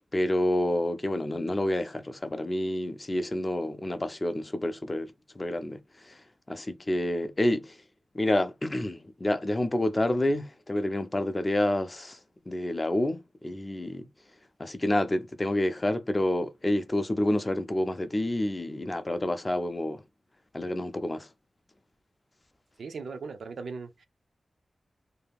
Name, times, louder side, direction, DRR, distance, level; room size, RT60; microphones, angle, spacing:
voice 1, 0.1-5.8 6.1-6.2 6.5-7.7 8.1-12.2 12.5-14.1 14.6-20.0 20.5-21.3, left 1 dB, 25° left, 0.4 m, -28 dB
voice 2, 22.8-24.1, right 4 dB, 85° right, 0.4 m, -38 dB
2.6 x 2.3 x 3.4 m
wide cardioid pair, 125°, 0 cm